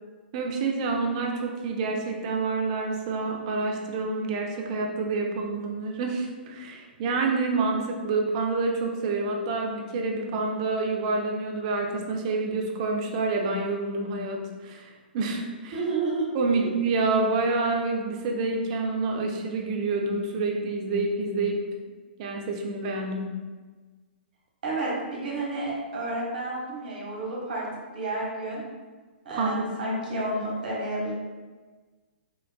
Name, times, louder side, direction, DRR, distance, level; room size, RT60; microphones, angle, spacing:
voice 1, 0.3-15.8 16.3-21.7 22.2-23.4 29.3-30.0, right 3 dB, 40° right, 2 dB, 0.6 m, -28 dB
voice 2, 15.7-16.7 24.6-27.6 27.9-28.6 29.2-31.1, right 2 dB, 55° right, -4 dB, 1.3 m, -30 dB
6.0 x 2.4 x 2.2 m, 1.3 s
figure-of-eight pair, 115°, 6 cm